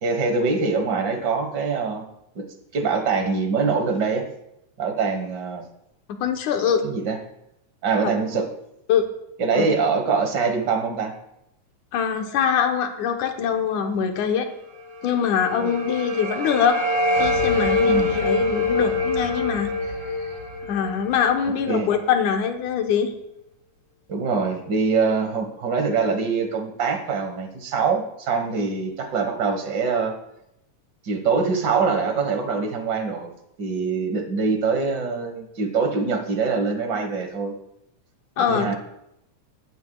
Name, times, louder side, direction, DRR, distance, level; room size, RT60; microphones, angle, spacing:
voice 1, 0.0-2.0 2.3-2.4 2.7-4.2 4.8-5.6 6.8-7.2 7.8-8.5 9.4-11.1 15.6-15.7 17.9-18.2 21.7-21.9 24.1-30.2 31.0-33.3 33.6-37.5 38.4-38.7, right 4 dB, 45° right, 5 dB, 1.6 m, -24 dB
voice 2, 6.2-6.9 8.0-8.1 8.9-9.1 9.5-9.7 11.9-14.5 15.0-16.8 17.2-19.7 20.7-23.1 38.4-38.7, left 7 dB, 85° left, 4 dB, 2.5 m, -23 dB
sound 1, 14.9-22.0, left 2 dB, 65° right, 4.9 m, -24 dB
19.5 x 9.3 x 2.3 m, 0.81 s
omnidirectional pair, 3.4 m